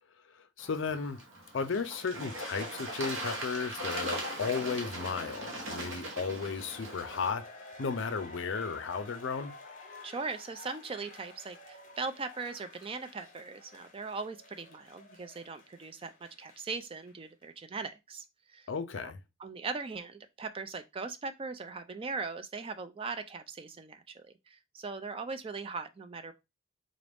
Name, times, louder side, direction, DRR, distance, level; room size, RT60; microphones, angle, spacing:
voice 1, 0.3-1.2 1.5-7.4 7.8-9.5 18.7-19.2, left 5 dB, 60° left, 0.5 m, -34 dB
Bird / Water, 0.6-7.3, right 1 dB, 65° right, 1.1 m, -39 dB
sound 1, 6.4-17.1 17.4-17.5, left 3 dB, 40° left, 0.8 m, -51 dB
voice 2, 10.0-18.7 19.0-19.1 19.4-26.3, right 4 dB, 25° right, 0.3 m, -40 dB
3.8 x 2.5 x 3.4 m
head